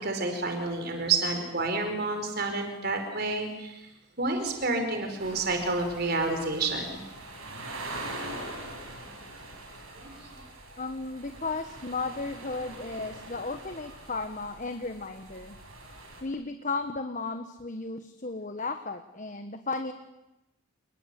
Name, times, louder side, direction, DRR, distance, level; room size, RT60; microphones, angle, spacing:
voice 1, 0.0-3.7 4.2-7.0 10.0-10.1, right 3 dB, 45° right, 5 dB, 4.8 m, -29 dB
sound 1, 5.2-16.2, right 2 dB, 80° right, 7.8 m, -43 dB
voice 2, 10.8-15.5 16.2-19.9, left 3 dB, 35° left, 7 dB, 1.3 m, -34 dB
29.0 x 21.5 x 8.4 m, 0.96 s
head